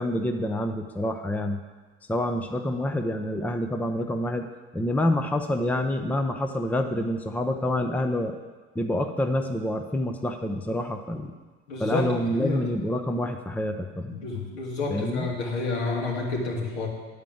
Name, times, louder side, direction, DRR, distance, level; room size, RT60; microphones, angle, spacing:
voice 1, 0.0-1.6 2.1-4.5 4.7-8.4 8.8-11.3 11.8-14.2 14.9-15.3, left 1 dB, 5° left, 6 dB, 0.7 m, -27 dB
voice 2, 11.7-12.1 12.3-12.6 14.2-16.9, left 3 dB, 80° left, -3 dB, 2.6 m, -29 dB
9.3 x 5.0 x 7.8 m, 1.3 s
hypercardioid pair, 85°, 33 cm